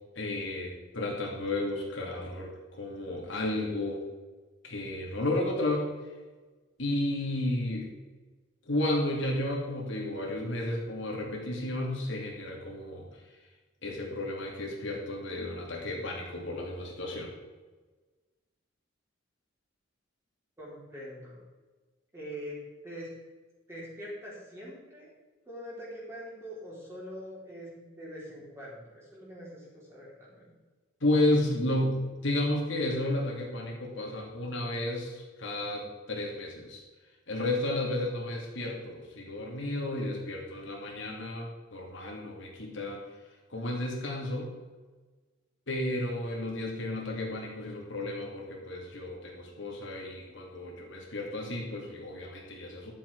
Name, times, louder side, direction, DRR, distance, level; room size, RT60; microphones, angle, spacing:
voice 1, 0.2-4.0 4.6-5.9 6.8-7.9 8.7-13.1 13.8-17.3 31.0-35.8 36.1-36.8 37.3-43.0 43.5-44.5 45.7-52.9, left 1 dB, 70° left, -1 dB, 2.6 m, -32 dB
voice 2, 20.6-21.4 22.1-22.6 22.8-23.1 23.7-25.1 25.5-30.5, equal, 15° right, -6 dB, 3.7 m, -43 dB
11.5 x 7.5 x 4.7 m, 1.3 s
head